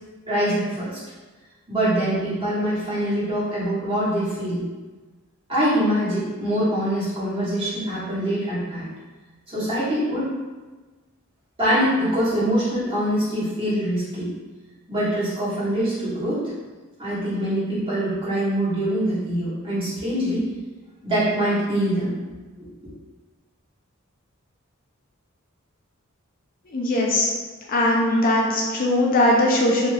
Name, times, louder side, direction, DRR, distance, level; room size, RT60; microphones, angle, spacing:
voice 1, 0.3-1.0 1.7-4.7 5.5-8.8 9.5-10.3 11.6-14.3 14.9-16.4 17.0-20.5 21.0-22.1 22.6-22.7, equal, 25° right, -11 dB, 1.3 m, -24 dB
voice 2, 26.7-27.3 27.7-29.9, left 1 dB, 45° left, -3 dB, 0.4 m, -20 dB
3.2 x 2.8 x 2.2 m, 1.3 s
head